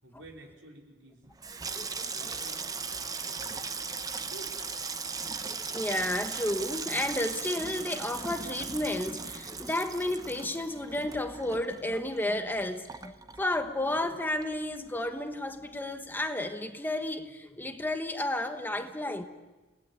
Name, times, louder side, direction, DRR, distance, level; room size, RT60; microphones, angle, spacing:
voice 1, 0.0-1.3 1.6-3.8 4.2-4.6, right 1 dB, 80° right, 4.6 m, -52 dB
Water tap faucet / Sink (filling or washing), 1.3-14.1 14.4-15.1 15.3-15.7, right 4 dB, 20° right, 0.9 m, -38 dB
voice 2, 5.2-19.2, left 1 dB, 10° left, 1.2 m, -32 dB
30.0 x 19.0 x 9.6 m
head